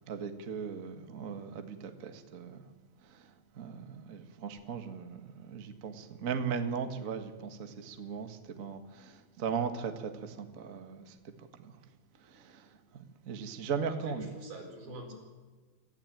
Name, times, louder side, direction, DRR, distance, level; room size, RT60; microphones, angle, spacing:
voice 1, 0.1-2.6 3.1-3.2 3.5-11.2 11.6-11.7 12.3-12.7 12.9-14.3, right 6 dB, 60° right, 7 dB, 0.8 m, -38 dB
voice 2, 13.9-15.1, right 2 dB, 80° right, 1 dB, 6.6 m, -45 dB
25.5 x 15.0 x 9.1 m, 1.4 s
omnidirectional pair, 4.2 m